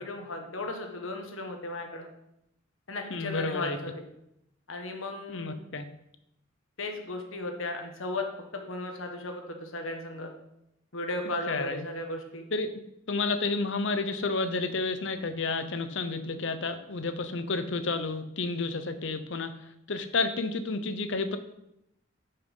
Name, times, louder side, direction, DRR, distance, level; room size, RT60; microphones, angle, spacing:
voice 1, 0.0-2.1 2.9-4.0 4.7-5.6 6.8-10.3 10.9-12.4, left 2 dB, 80° left, 4 dB, 1.5 m, -36 dB
voice 2, 3.1-3.8 5.3-5.8 11.5-11.8 12.5-12.7 13.1-19.5 19.9-21.4, left 3 dB, 60° left, 10 dB, 0.8 m, -30 dB
9.3 x 5.6 x 5.5 m, 0.81 s
head